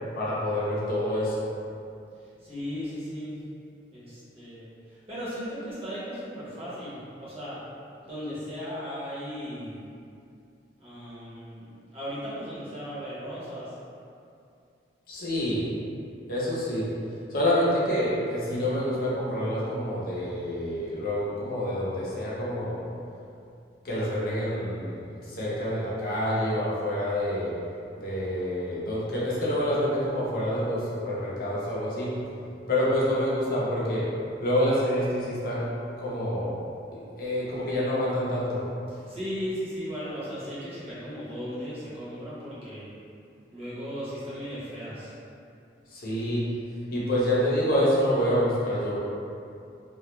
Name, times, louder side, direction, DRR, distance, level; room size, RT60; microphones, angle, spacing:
voice 1, 0.1-1.4 15.1-15.7 16.3-16.8 17.3-22.7 23.8-27.5 28.0-32.1 32.7-34.1 34.4-35.7 36.0-36.5 36.9-38.6 45.9-46.4 46.9-49.0, equal, 50° left, -7 dB, 0.6 m, -27 dB
voice 2, 2.4-3.4 3.9-7.6 8.0-9.8 10.8-13.7 39.1-42.9 43.5-45.1, equal, 30° right, -11 dB, 0.8 m, -36 dB
2.3 x 2.0 x 3.0 m, 2.5 s
head